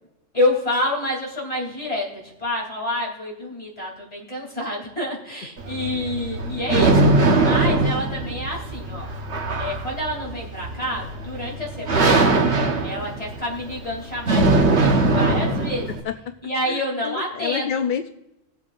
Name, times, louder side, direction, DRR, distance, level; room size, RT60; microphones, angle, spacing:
voice 1, 0.3-9.1 9.6-12.3 12.8-15.9 16.4-17.7, left 1 dB, 30° left, -2 dB, 3.2 m, -28 dB
sound 1, 5.6-16.0, right 2 dB, 60° right, 1.5 m, -21 dB
voice 2, 16.7-18.1, left 7 dB, 60° left, 8 dB, 0.5 m, -28 dB
19.5 x 8.1 x 2.5 m, 0.92 s
omnidirectional pair, 1.3 m